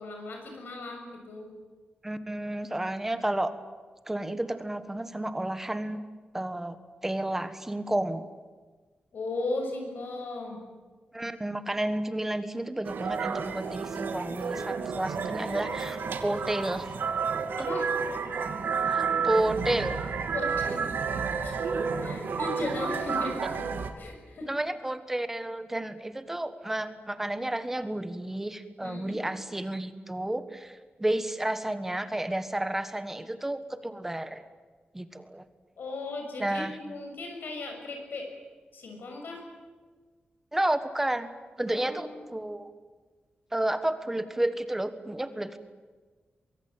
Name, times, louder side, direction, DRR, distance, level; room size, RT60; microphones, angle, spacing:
voice 1, 0.0-1.5 9.1-10.6 17.6-17.9 18.8-18.9 20.3-20.9 21.4-23.4 24.0-24.5 28.8-29.2 35.8-38.3 38.7-39.4 41.7-42.3, left 2 dB, 75° left, 2 dB, 6.6 m, -37 dB
voice 2, 2.0-3.5 4.1-6.0 6.3-6.8 7.0-8.2 11.1-16.9 18.9-20.0 24.5-34.4 34.9-35.4 36.4-36.7 40.5-41.3 41.6-42.7 43.5-45.6, right 1 dB, 10° right, 10 dB, 1.5 m, -31 dB
sound 1, 12.8-23.9, right 5 dB, 80° right, 2.6 m, -31 dB
23.5 x 23.0 x 8.9 m, 1.4 s
wide cardioid pair, 180°, 3 cm